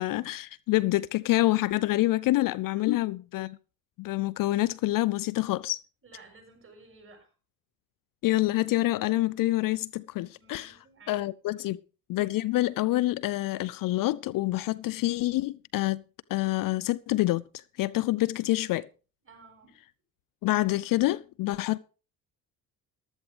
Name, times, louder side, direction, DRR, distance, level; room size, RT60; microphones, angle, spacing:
voice 1, 0.0-3.6 4.0-5.8 8.2-10.8 11.1-11.8 12.1-16.0 16.3-18.9 20.4-21.8, left 17 dB, 50° left, 0.5 m, -27 dB
voice 2, 2.7-3.1 6.0-7.3 10.4-11.7 19.2-19.8, right 3 dB, 30° right, 6.3 m, -54 dB
14.5 x 12.5 x 3.4 m
hypercardioid pair, 60°, 45 cm